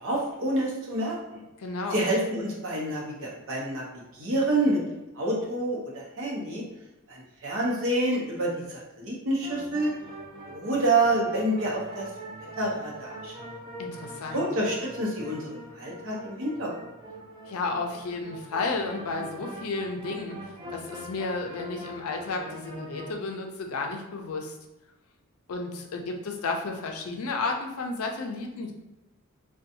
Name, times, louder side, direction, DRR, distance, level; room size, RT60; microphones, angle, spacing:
voice 1, 0.0-1.4 1.9-4.8 5.1-6.6 7.1-9.9 10.5-12.1 12.6-13.3 14.3-16.7, right 1 dB, 60° right, -3 dB, 0.8 m, -28 dB
voice 2, 1.6-2.0 13.8-14.4 17.5-24.5 25.5-28.7, left 3 dB, 70° left, 3 dB, 0.4 m, -32 dB
sound 1, 9.4-23.1, right 1 dB, 25° right, 0.4 m, -42 dB
2.5 x 2.3 x 2.6 m, 1.0 s
head